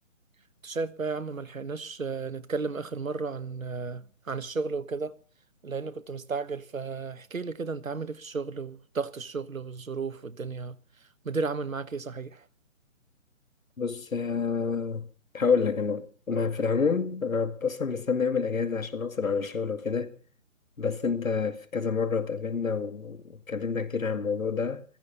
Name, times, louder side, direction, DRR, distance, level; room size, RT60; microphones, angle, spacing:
voice 1, 0.6-5.1 5.6-10.8 11.2-12.4, right 4 dB, 85° right, 1.3 m, -33 dB
voice 2, 13.8-15.1 15.3-20.1 20.8-24.8, left 5 dB, 80° left, 2.3 m, -28 dB
15.5 x 15.0 x 5.6 m
figure-of-eight pair, 150°, 40 cm